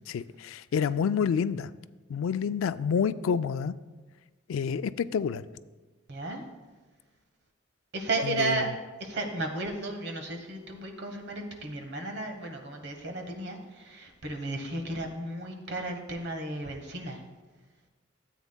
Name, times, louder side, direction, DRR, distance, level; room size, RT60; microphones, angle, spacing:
voice 1, 0.1-1.7 2.1-3.7 4.5-5.4 8.2-8.7, left 6 dB, 85° left, 15 dB, 0.3 m, -28 dB
voice 2, 6.1-6.4 7.9-8.7 9.0-17.2, right 2 dB, 55° right, 5 dB, 1.1 m, -34 dB
13.0 x 8.2 x 2.2 m, 1.3 s
head